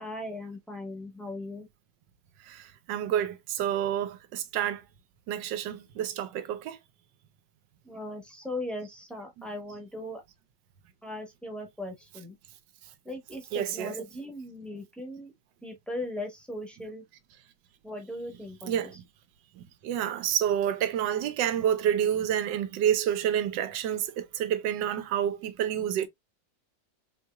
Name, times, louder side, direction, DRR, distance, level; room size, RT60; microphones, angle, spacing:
voice 1, 0.0-1.7 7.8-10.2 11.0-12.3 13.0-15.3 15.6-17.0 17.8-18.9, left 1 dB, ahead, 0.7 m, -38 dB
voice 2, 2.5-4.8 5.3-6.8 13.5-13.9 18.6-19.0 19.6-26.1, right 10 dB, 90° right, 1.3 m, -29 dB
4.4 x 2.8 x 2.2 m
omnidirectional pair, 1.9 m